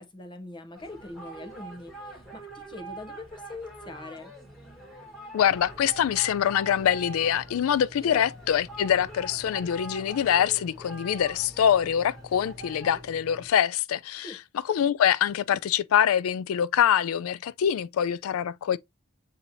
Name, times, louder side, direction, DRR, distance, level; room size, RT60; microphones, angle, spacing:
voice 1, 0.0-4.3 8.0-8.3 14.2-14.4, left 2 dB, 20° left, 0.6 m, -42 dB
sound 1, 0.7-13.0, right 2 dB, ahead, 1.3 m, -45 dB
voice 2, 5.3-14.4 14.7-18.8, left 9 dB, 85° left, 0.3 m, -24 dB
sound 2, 5.5-13.5, left 1 dB, 15° right, 1.0 m, -48 dB
7.1 x 2.8 x 2.6 m
head